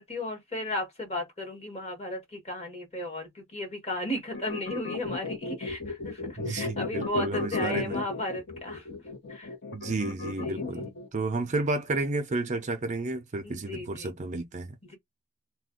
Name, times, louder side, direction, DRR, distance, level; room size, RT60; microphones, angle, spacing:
voice 1, 0.0-8.9 9.3-9.5 10.2-10.9 13.4-14.1 14.8-15.0, left 1 dB, 30° left, 1.3 m, -35 dB
sound 1, 4.3-11.1, left 3 dB, 55° left, 1.0 m, -34 dB
voice 2, 6.4-8.0 9.7-14.7, right 2 dB, 35° right, 0.5 m, -31 dB
2.5 x 2.2 x 3.6 m
head